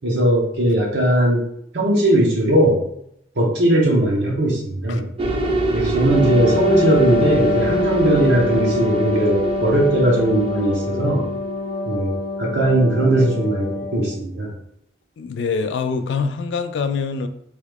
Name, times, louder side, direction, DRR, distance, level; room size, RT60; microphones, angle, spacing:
voice 1, 0.0-1.4 1.7-2.8 3.4-5.1 5.7-11.3 11.9-14.5, right 1 dB, 60° right, -3 dB, 0.8 m, -19 dB
sound 1, 5.2-12.3, right 1 dB, 30° right, 0.4 m, -25 dB
Wind instrument woodwind instrument, 6.0-14.1, left 2 dB, 50° left, 0.7 m, -25 dB
voice 2, 15.2-17.3, left 5 dB, 70° left, 9 dB, 0.3 m, -24 dB
3.1 x 2.3 x 3.3 m, 0.73 s
head